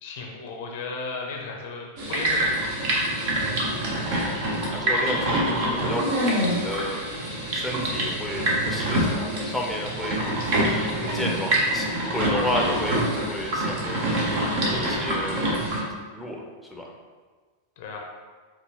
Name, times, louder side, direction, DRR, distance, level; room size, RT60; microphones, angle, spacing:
voice 1, 0.0-3.0 17.8-18.0, left 4 dB, 50° left, 0 dB, 0.6 m, -35 dB
sound 1, 2.0-15.8, right 1 dB, 50° right, 1.0 m, -25 dB
voice 2, 4.7-7.0 7.5-10.5 11.0-14.1 14.7-15.5 16.1-16.4 16.7-16.9, left 1 dB, ahead, -1 dB, 0.7 m, -32 dB
5.3 x 2.5 x 3.1 m, 1.4 s
figure-of-eight pair, 90°, 0 cm